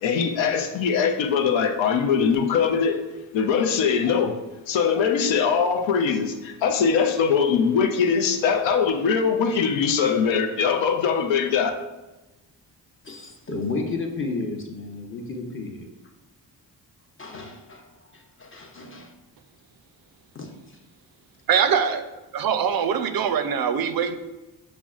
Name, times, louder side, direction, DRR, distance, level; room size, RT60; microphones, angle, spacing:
voice 1, 0.0-3.0 3.3-4.3 4.7-11.7, left 6 dB, 75° left, 6 dB, 0.6 m, -22 dB
voice 2, 13.0-15.9 17.2-19.1 20.3-20.8, left 3 dB, 25° left, 2 dB, 0.7 m, -33 dB
voice 3, 21.5-22.1 22.3-24.2, right 7 dB, 50° right, 9 dB, 0.4 m, -23 dB
5.8 x 2.1 x 2.4 m, 1.1 s
supercardioid pair, 55°, 46 cm